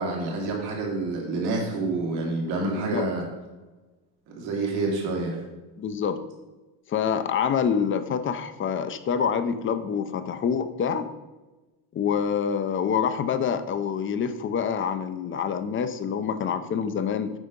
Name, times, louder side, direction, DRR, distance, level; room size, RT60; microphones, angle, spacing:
voice 1, 0.0-3.3 4.3-5.4, right 3 dB, 90° right, -1 dB, 2.5 m, -28 dB
voice 2, 5.8-6.2 6.9-11.1 11.9-17.3, left 7 dB, 30° left, 11 dB, 0.6 m, -26 dB
8.2 x 5.0 x 5.3 m, 1.2 s
cardioid pair, 135°, 40 cm